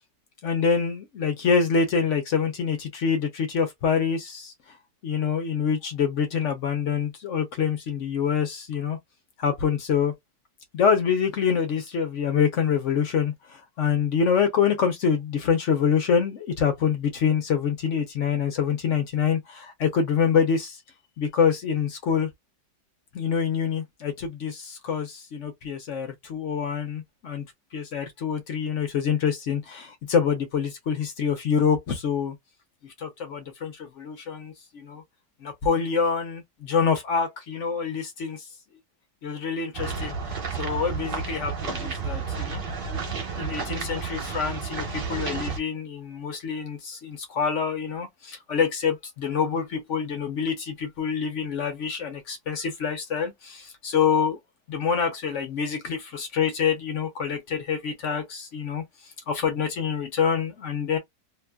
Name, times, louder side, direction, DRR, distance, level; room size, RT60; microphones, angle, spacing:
voice 1, 0.4-4.5 5.0-9.0 9.4-10.1 10.7-20.8 21.2-22.3 23.1-27.4 27.7-32.3 32.8-35.0 35.4-38.5 39.2-42.6 43.4-54.4 54.7-61.0, left 6 dB, 60° left, 0.9 m, -26 dB
sound 1, 39.7-45.6, right 5 dB, 45° right, 0.8 m, -31 dB
2.9 x 2.4 x 2.2 m
omnidirectional pair, 1.9 m